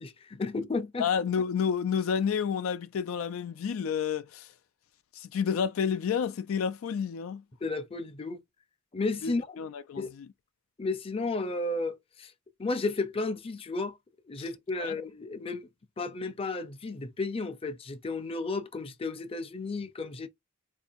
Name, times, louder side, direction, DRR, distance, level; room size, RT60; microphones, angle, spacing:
voice 1, 0.0-1.1 7.6-8.4 8.9-9.6 10.0-10.1 10.8-12.3 12.6-14.0 14.3-15.7 16.0-20.3, left 3 dB, 30° left, 0.5 m, -33 dB
voice 2, 1.0-4.5 5.1-7.4 9.2-9.3 9.6-10.3 14.4-14.5 14.8-15.0, left 7 dB, 85° left, 0.4 m, -30 dB
4.2 x 2.8 x 2.4 m
head